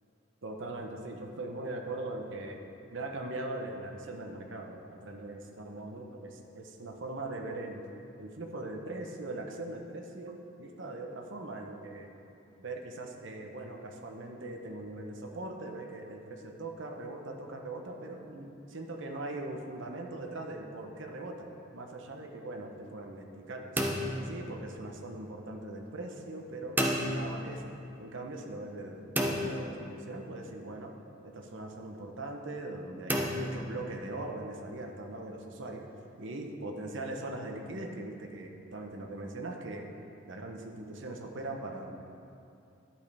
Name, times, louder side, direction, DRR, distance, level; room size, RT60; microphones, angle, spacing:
voice 1, 0.4-2.6 2.9-7.8 8.2-12.1 12.6-21.5 21.7-23.8 24.2-27.7 28.0-30.9 31.2-35.8 36.2-39.9 40.2-42.0, right 2 dB, 65° right, 2 dB, 0.9 m, -41 dB
sound 1, 23.8-25.1 26.8-27.8 29.2-30.4 33.1-34.3, equal, 10° right, 0.7 m, -33 dB
11.5 x 8.4 x 3.5 m, 2.6 s
head